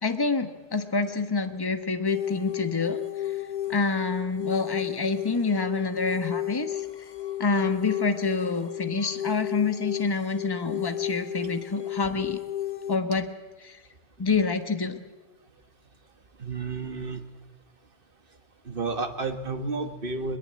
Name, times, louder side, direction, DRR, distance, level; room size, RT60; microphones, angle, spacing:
voice 1, 0.0-3.0 3.7-6.9 7.4-12.4 12.9-13.3 13.6-13.8 14.2-15.0, left 4 dB, 20° left, 9 dB, 1.2 m, -27 dB
sound 1, 2.1-13.0, left 12 dB, 45° left, 0.9 m, -33 dB
voice 2, 16.4-17.2 18.6-20.4, right 3 dB, 55° right, 8 dB, 1.7 m, -31 dB
21.5 x 21.5 x 7.7 m, 1.2 s
omnidirectional pair, 1.1 m